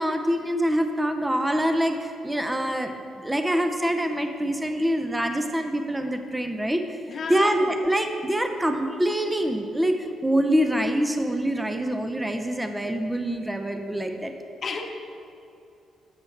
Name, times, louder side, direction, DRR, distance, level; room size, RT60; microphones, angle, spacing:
voice 1, 0.0-7.0 7.3-14.3, equal, 5° right, 5 dB, 0.4 m, -25 dB
voice 2, 7.1-7.7 14.6-14.8, left 4 dB, 35° left, 3 dB, 0.8 m, -32 dB
11.0 x 7.6 x 3.2 m, 2.6 s
cardioid pair, 165°, 0 cm